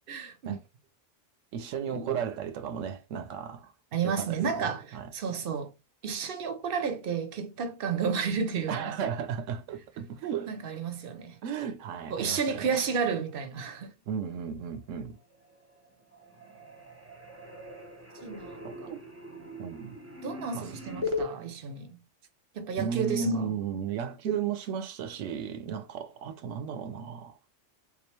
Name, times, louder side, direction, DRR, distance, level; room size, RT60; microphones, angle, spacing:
voice 1, 0.1-0.6 1.9-2.1 3.9-5.7 6.0-9.0 10.5-11.4 12.1-13.9 18.2-18.6 20.2-22.0 22.5-23.5 25.7-25.8, right 5 dB, 55° right, 0.7 m, -31 dB
voice 2, 1.5-3.7 4.0-5.1 8.7-10.6 11.4-12.8 14.1-15.2 18.6-19.0 19.6-20.0 20.5-20.8 22.8-27.4, right 7 dB, 80° right, 0.9 m, -35 dB
sound 1, 15.3-15.9 16.1-21.3, left 3 dB, 15° right, 0.7 m, -39 dB
3.4 x 3.0 x 3.1 m
omnidirectional pair, 1.3 m